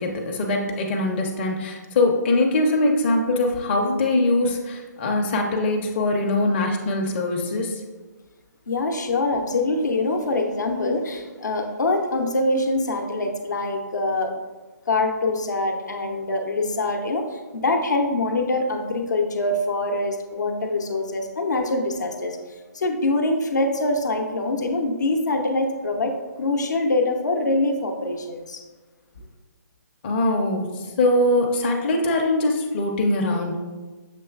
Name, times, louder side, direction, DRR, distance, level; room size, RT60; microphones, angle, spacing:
voice 1, 0.0-7.8 30.0-33.5, left 2 dB, 35° left, 1 dB, 0.6 m, -22 dB
voice 2, 8.7-14.3 14.9-22.4 22.7-28.6, left 2 dB, 75° left, 3 dB, 0.7 m, -24 dB
6.6 x 3.0 x 2.3 m, 1.3 s
figure-of-eight pair, 145°, 10 cm